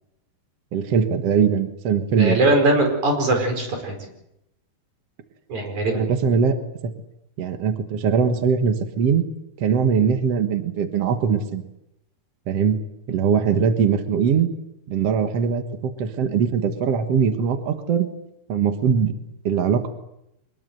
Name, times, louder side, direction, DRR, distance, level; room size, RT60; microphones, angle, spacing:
voice 1, 0.7-2.4 5.9-6.9 7.4-9.2 9.6-11.6 12.5-12.8 13.1-14.5 14.9-18.1 18.5-19.1 19.4-19.9, right 6 dB, 60° right, 7 dB, 1.6 m, -21 dB
voice 2, 2.2-3.9 5.5-6.1, right 2 dB, 45° right, 4 dB, 6.1 m, -21 dB
24.5 x 21.0 x 7.9 m, 0.84 s
omnidirectional pair, 4.9 m